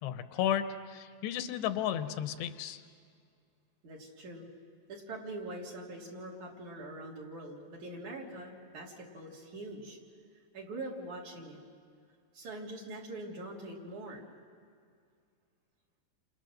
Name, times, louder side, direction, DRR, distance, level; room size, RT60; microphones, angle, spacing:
voice 1, 0.0-2.8, left 10 dB, 85° left, 10 dB, 3.1 m, -33 dB
voice 2, 3.8-4.5 4.9-10.0 10.5-11.6 12.3-14.2, right 2 dB, 45° right, -2 dB, 4.2 m, -43 dB
29.5 x 27.0 x 6.6 m, 2.3 s
omnidirectional pair, 4.8 m